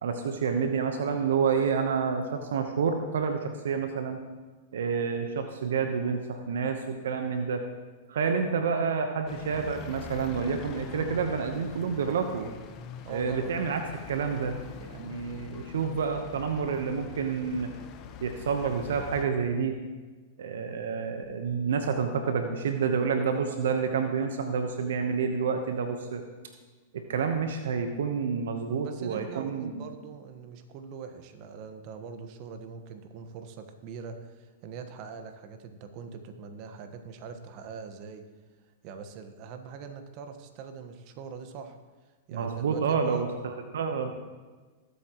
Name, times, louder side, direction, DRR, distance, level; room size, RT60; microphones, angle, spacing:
voice 1, 0.0-4.2 4.7-7.6 8.1-12.5 13.1-13.8 14.1-17.7 18.2-19.8 20.4-26.2 26.9-29.8 42.3-44.1, right 6 dB, 75° right, 6 dB, 1.0 m, -29 dB
sound 1, 9.3-19.2, left 6 dB, 40° left, 1.2 m, -43 dB
voice 2, 13.0-13.5 28.8-38.2 38.8-41.8 42.3-43.4, right 6 dB, 50° right, 7 dB, 1.3 m, -42 dB
20.5 x 8.4 x 3.0 m, 1.3 s
hypercardioid pair, 110°, 0 cm